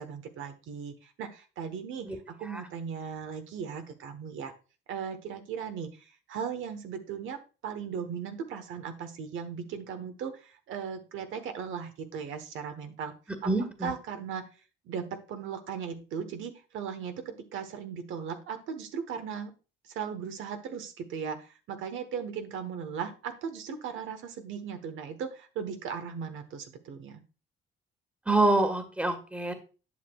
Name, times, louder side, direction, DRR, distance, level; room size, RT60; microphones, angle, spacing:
voice 1, 0.0-4.5 4.9-13.1 13.8-14.5 14.8-19.5 19.8-27.2, right 7 dB, 80° right, 7 dB, 1.1 m, -37 dB
voice 2, 13.4-13.9 28.3-29.5, right 2 dB, 5° right, 7 dB, 1.4 m, -26 dB
11.0 x 6.3 x 2.3 m, 0.34 s
cardioid pair, 90°, 20 cm